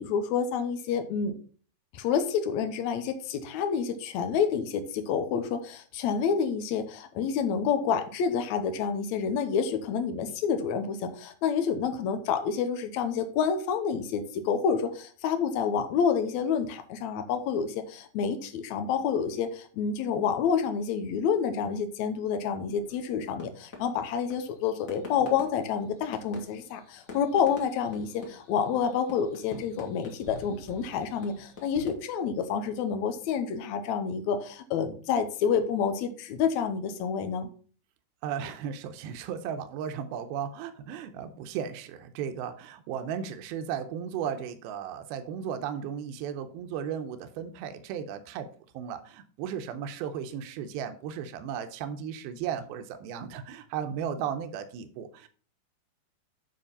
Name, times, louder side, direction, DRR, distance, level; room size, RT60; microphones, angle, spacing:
voice 1, 0.0-1.4 1.9-37.5, left 7 dB, 80° left, 8 dB, 1.6 m, -28 dB
sound 1, 22.7-31.9, left 3 dB, 35° left, 1.3 m, -46 dB
voice 2, 38.2-48.5 48.7-55.3, right 8 dB, 85° right, 9 dB, 2.6 m, -35 dB
9.1 x 4.3 x 5.4 m, 0.42 s
omnidirectional pair, 4.4 m